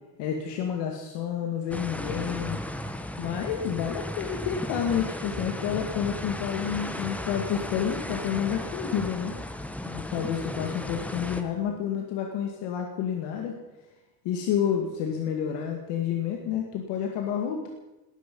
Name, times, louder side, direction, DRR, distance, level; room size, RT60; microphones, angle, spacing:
voice 1, 0.2-2.6 3.2-9.3 9.9-13.6 14.2-17.7, left 8 dB, 85° left, 2 dB, 2.2 m, -29 dB
sound 1, 1.7-11.4, left 1 dB, 5° left, 0.9 m, -35 dB
19.0 x 13.5 x 5.5 m, 1.1 s
cardioid pair, 160°, 41 cm